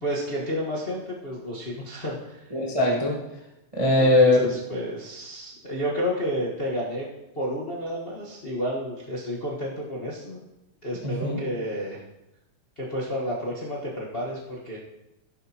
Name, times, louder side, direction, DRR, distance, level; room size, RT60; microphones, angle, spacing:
voice 1, 0.0-2.5 4.0-7.1 7.3-10.4 10.8-12.0 12.8-14.8, equal, 45° left, -5 dB, 0.7 m, -31 dB
voice 2, 2.5-3.2 3.7-4.4 11.0-11.4, left 2 dB, 55° right, -3 dB, 0.3 m, -20 dB
13.0 x 11.0 x 3.0 m, 0.92 s
omnidirectional pair, 3.7 m